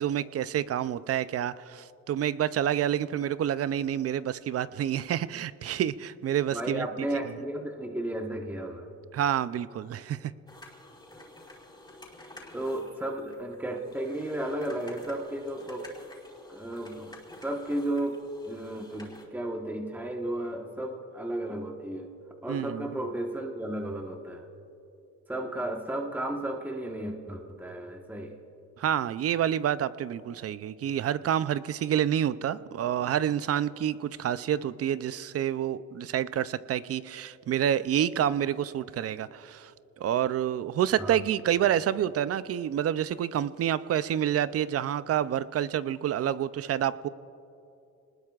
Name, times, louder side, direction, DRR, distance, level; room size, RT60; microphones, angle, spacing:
voice 1, 0.0-6.9 9.1-10.3 22.5-22.9 28.8-39.7 40.0-47.1, right 10 dB, 50° right, 16 dB, 0.5 m, -28 dB
voice 2, 6.5-8.9 12.5-15.9 16.5-17.1 17.4-22.1 22.4-24.4 25.3-28.3 41.0-41.2, right 1 dB, 5° right, 2 dB, 1.2 m, -34 dB
sound 1, 10.5-19.2, left 1 dB, 15° left, 4.4 m, -50 dB
26.0 x 20.0 x 2.4 m, 2.8 s
cardioid pair, 90°, 30 cm